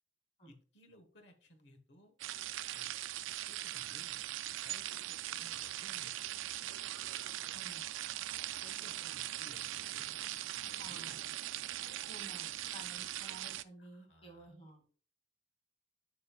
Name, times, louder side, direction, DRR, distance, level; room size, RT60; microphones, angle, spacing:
voice 1, 0.4-2.2 2.7-3.0 3.4-6.7 8.0-8.1 8.4-10.1 10.5-11.2 13.8-14.6, left 1 dB, 65° left, 7 dB, 1.3 m, -60 dB
sound 1, 2.2-13.6, right 14 dB, 85° right, 0.4 m, -41 dB
voice 2, 7.5-7.9 10.8-11.2 12.1-14.9, right 1 dB, 30° left, 3 dB, 2.4 m, -53 dB
11.0 x 5.4 x 2.4 m, 0.41 s
head